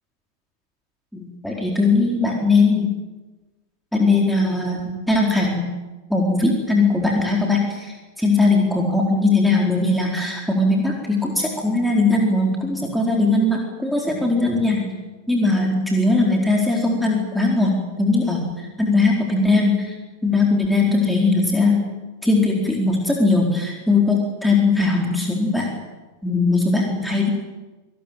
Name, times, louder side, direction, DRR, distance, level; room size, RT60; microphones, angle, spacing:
voice 1, 1.1-2.9 3.9-5.7 6.1-15.0 15.3-19.9 20.2-21.9 22.2-25.7 26.2-27.3, left 3 dB, ahead, -1 dB, 4.3 m, -19 dB
27.5 x 18.5 x 9.2 m, 1.2 s
figure-of-eight pair, 90°, 0 cm